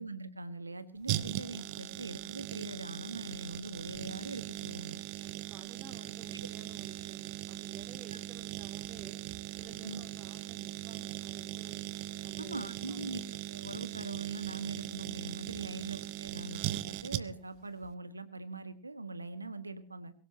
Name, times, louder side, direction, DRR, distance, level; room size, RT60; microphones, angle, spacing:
voice 1, 0.0-5.0 9.8-10.0 12.4-13.2 13.5-20.1, right 2 dB, 80° right, 14 dB, 1.3 m, -42 dB
sound 1, 1.1-17.6 17.8-17.9, right 15 dB, 45° right, 0.9 m, -40 dB
voice 2, 5.2-9.2 9.6-11.8 12.2-13.2 15.6-15.9, right 4 dB, 30° right, 3 dB, 3.9 m, -53 dB
22.5 x 17.5 x 2.8 m, 0.38 s
figure-of-eight pair, 90°, 0 cm